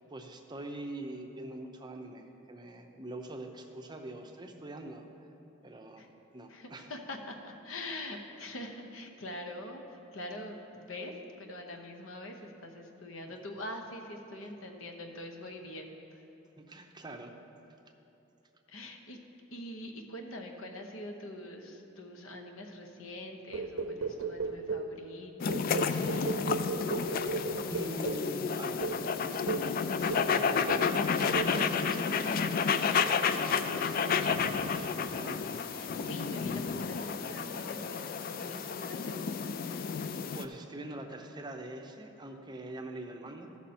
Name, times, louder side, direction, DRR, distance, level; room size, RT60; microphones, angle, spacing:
voice 1, 0.0-5.1 5.6-6.1 6.3-6.9 13.2-13.3 16.6-17.3 27.7-35.7 38.6-38.7 40.3-43.6, right 1 dB, 20° right, 3 dB, 0.6 m, -44 dB
voice 2, 6.5-16.2 18.7-19.2 19.5-26.7 35.7-39.5, left 1 dB, 80° left, 3 dB, 0.9 m, -44 dB
sound 1, 23.5-25.0 25.5-28.3 28.8-29.0 29.5-29.7 30.1-30.4 30.7-31.0 31.3-31.6, right 4 dB, 90° right, 0.6 m, -35 dB
sound 2, 25.4-40.5, left 6 dB, 45° left, 0.3 m, -31 dB
14.0 x 6.1 x 4.3 m, 2.9 s
head